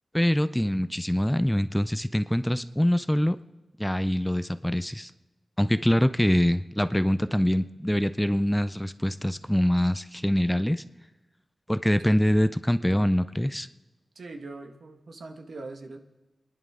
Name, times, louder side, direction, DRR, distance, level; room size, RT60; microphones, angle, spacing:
voice 1, 0.1-3.4 3.8-5.1 5.6-10.8 11.7-13.7, equal, 5° left, 13 dB, 0.4 m, -24 dB
voice 2, 12.0-12.3 14.1-16.0, right 3 dB, 70° right, 5 dB, 1.3 m, -42 dB
28.5 x 10.5 x 3.6 m, 1.1 s
wide cardioid pair, 110°, 0 cm